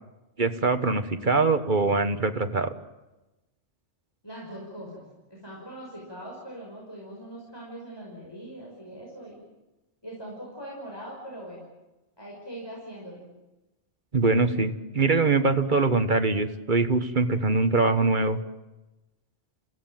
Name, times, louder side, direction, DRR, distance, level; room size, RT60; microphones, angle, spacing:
voice 1, 0.4-2.7 14.1-18.4, right 3 dB, 45° right, 9 dB, 1.5 m, -23 dB
voice 2, 4.2-5.0 5.3-9.4 10.0-11.6 12.2-13.3, right 1 dB, 20° left, -3 dB, 6.0 m, -41 dB
29.0 x 16.5 x 9.2 m, 1.0 s
omnidirectional pair, 1.2 m